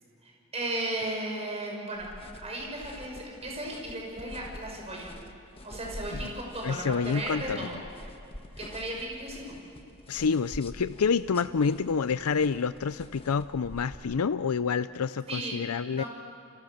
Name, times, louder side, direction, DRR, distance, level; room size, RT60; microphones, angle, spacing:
voice 1, 0.2-2.1 2.4-5.1 5.6-7.8 8.6-9.5 15.3-15.5 16.0-16.1, right 1 dB, 30° right, -1 dB, 6.1 m, -35 dB
sound 1, 1.9-13.9, left 1 dB, 25° left, 1.4 m, -46 dB
voice 2, 6.6-7.7 10.1-16.0, left 5 dB, 80° left, 13 dB, 0.5 m, -28 dB
30.0 x 27.0 x 6.6 m, 2.7 s
head